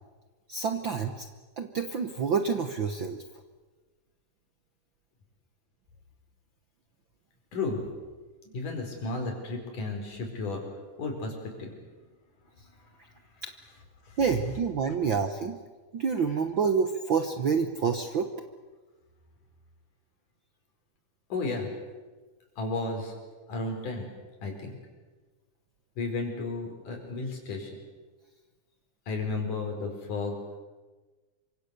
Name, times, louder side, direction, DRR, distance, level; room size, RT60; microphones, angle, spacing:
voice 1, 0.5-1.3 1.6-3.2 13.4-13.5 14.2-15.6 15.9-18.3, right 6 dB, 60° right, 7 dB, 1.3 m, -28 dB
voice 2, 8.5-10.6 11.0-11.7 14.1-14.2 21.3-21.7 22.6-23.1 23.5-24.1 24.4-24.8 26.0-27.7 29.1-30.4, left 3 dB, 75° left, 3 dB, 6.0 m, -33 dB
27.0 x 25.0 x 6.8 m, 1.3 s
omnidirectional pair, 3.6 m